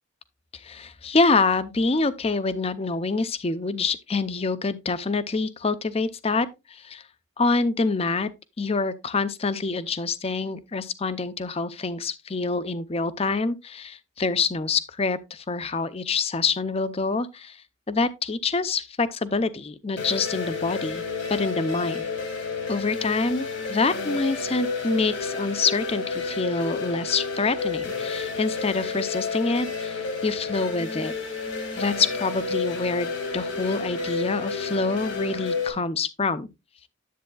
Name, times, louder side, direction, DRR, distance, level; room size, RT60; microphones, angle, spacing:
voice 1, 0.5-7.0 7.4-8.3 8.6-17.6 17.9-21.0 21.3-22.1 22.7-31.1 31.8-36.5, left 4 dB, 30° left, 0.5 m, -26 dB
sound 1, 20.0-35.7, left 4 dB, 55° left, 2.2 m, -31 dB
10.0 x 8.1 x 2.3 m
head